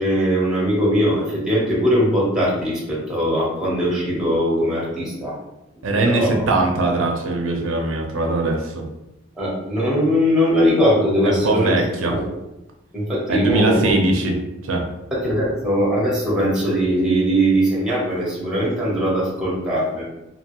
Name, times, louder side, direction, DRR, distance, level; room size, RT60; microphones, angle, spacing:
voice 1, 0.0-5.3 6.0-6.6 9.4-11.8 12.1-12.3 12.9-14.0 15.1-20.0, equal, 5° right, -6 dB, 0.9 m, -20 dB
voice 2, 5.8-8.8 11.2-12.2 13.3-14.4 14.6-14.9, right 2 dB, 85° right, 2 dB, 0.5 m, -21 dB
2.9 x 2.2 x 2.9 m, 0.92 s
head